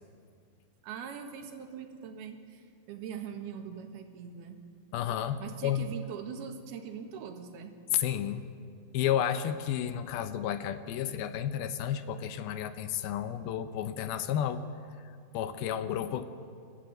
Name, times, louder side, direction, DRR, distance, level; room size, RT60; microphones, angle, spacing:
voice 1, 0.8-4.6 5.4-7.7, right 7 dB, 75° right, 5 dB, 3.4 m, -42 dB
voice 2, 4.9-5.9 7.9-8.4 8.9-14.6 14.9-15.0 15.3-16.3, left 10 dB, 75° left, 11 dB, 2.6 m, -31 dB
28.5 x 13.5 x 9.2 m, 2.3 s
omnidirectional pair, 4.6 m